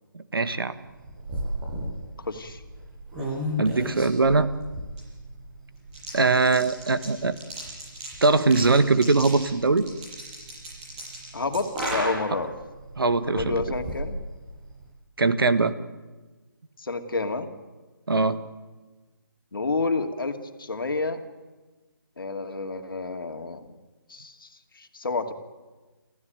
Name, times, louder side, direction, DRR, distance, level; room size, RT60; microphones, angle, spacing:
voice 1, 0.1-0.7 3.6-4.5 6.1-7.4 8.2-9.9 13.0-13.6 15.2-15.7 18.1-18.4, right 3 dB, 75° right, 11 dB, 1.5 m, -21 dB
sound 1, 0.8-14.9, equal, 25° right, 8.0 m, -35 dB
voice 2, 2.2-2.6 11.3-12.5 13.3-14.2 16.8-17.5 19.5-21.2 22.2-23.7 24.1-24.5 24.8-25.3, left 3 dB, 75° left, 6 dB, 2.4 m, -29 dB
27.0 x 15.5 x 9.2 m, 1.3 s
figure-of-eight pair, 155°, 12 cm